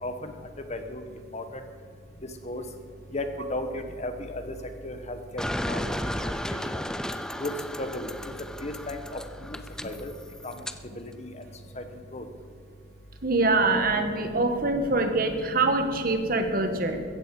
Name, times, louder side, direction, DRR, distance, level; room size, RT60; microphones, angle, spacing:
voice 1, 0.7-1.0 1.3-1.4 2.5-2.6 3.1-3.2 3.5-4.4 4.8-5.2 5.7-5.9 7.4-7.5 7.8-8.1 8.6-9.0 9.8-10.1 11.2-11.3 12.1-12.2, left 2 dB, 35° left, 7 dB, 1.3 m, -33 dB
sound 1, 5.4-10.8, equal, 5° left, 0.4 m, -34 dB
voice 2, 13.2-17.0, right 3 dB, 50° right, 6 dB, 1.5 m, -24 dB
15.5 x 14.5 x 4.9 m, 2.1 s
head